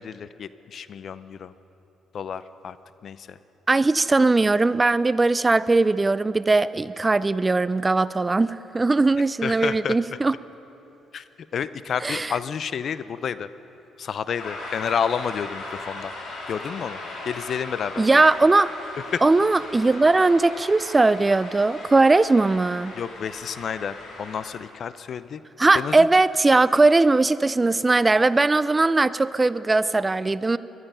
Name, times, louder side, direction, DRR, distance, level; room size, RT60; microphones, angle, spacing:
voice 1, 0.0-1.5 2.1-2.8 3.0-3.4 9.4-10.2 11.1-11.2 11.5-13.5 14.0-16.1 16.5-18.0 19.1-19.2 22.9-25.4 25.7-26.2, left 7 dB, 55° left, 15 dB, 0.5 m, -30 dB
voice 2, 3.7-10.3 12.0-12.3 18.0-18.7 19.2-22.9 25.6-30.6, right 3 dB, 20° right, 17 dB, 0.3 m, -19 dB
sound 1, 14.4-24.5, left 2 dB, 75° left, 3.2 m, -38 dB
19.5 x 12.5 x 5.5 m, 3.0 s
cardioid pair, 90°, 0 cm